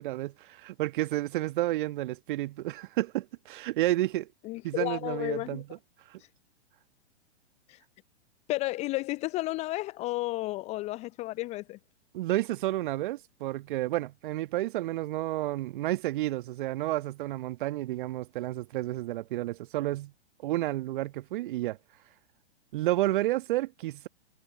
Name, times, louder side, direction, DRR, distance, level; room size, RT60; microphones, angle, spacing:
voice 1, 0.0-4.3 4.6-5.7 6.1-6.2 12.1-20.1 20.4-21.8 22.7-24.1, right 16 dB, 50° right, 1.3 m, -31 dB
voice 2, 4.4-5.6 7.7-7.8 8.5-11.8, left 19 dB, 20° left, 0.5 m, -32 dB
figure-of-eight pair, 110°, 33 cm